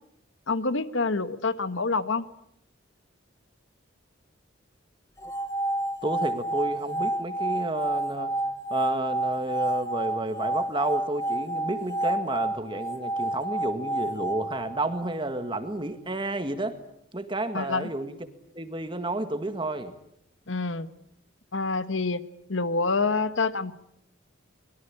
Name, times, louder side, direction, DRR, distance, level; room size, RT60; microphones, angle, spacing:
voice 1, 0.5-2.2 17.5-17.9 20.5-20.9 21.5-22.2 22.5-23.7, left 3 dB, 70° left, 13 dB, 1.3 m, -27 dB
sound 1, 5.2-15.3, right 1 dB, 15° left, 1.0 m, -29 dB
voice 2, 6.0-8.3 8.7-16.8 17.1-18.2 18.5-19.9, right 2 dB, 25° right, 9 dB, 1.8 m, -31 dB
24.5 x 22.0 x 8.7 m, 0.76 s
head